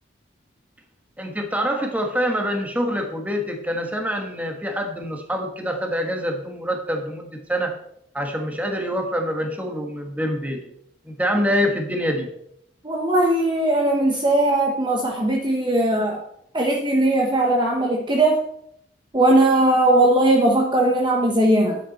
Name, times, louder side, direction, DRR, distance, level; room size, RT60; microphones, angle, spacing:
voice 1, 1.2-7.7 8.1-10.6 11.0-12.3, equal, 10° right, 3 dB, 1.5 m, -25 dB
voice 2, 12.8-16.2 16.5-18.4 19.1-21.8, right 1 dB, 25° right, 0 dB, 1.1 m, -19 dB
11.0 x 8.6 x 4.2 m, 0.74 s
head